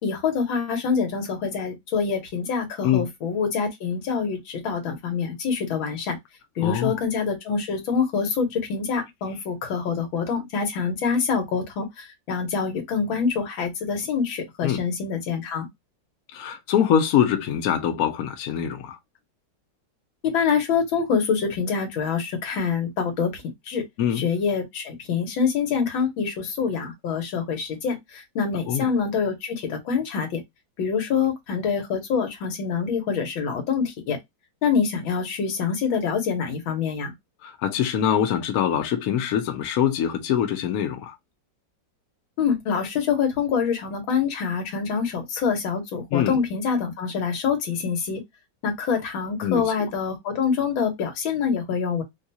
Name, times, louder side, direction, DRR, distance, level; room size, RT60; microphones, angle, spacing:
voice 1, 0.0-6.2 6.6-15.7 20.2-23.8 24.1-30.4 30.8-34.2 34.6-37.1 42.4-48.2 48.6-52.0, left 6 dB, 90° left, 1.9 m, -25 dB
voice 2, 6.6-7.0 14.6-14.8 16.3-19.0 24.0-24.2 28.7-28.9 37.4-41.2 46.1-46.4 49.4-49.9, left 9 dB, 65° left, 0.9 m, -24 dB
3.8 x 2.3 x 2.7 m
omnidirectional pair, 2.1 m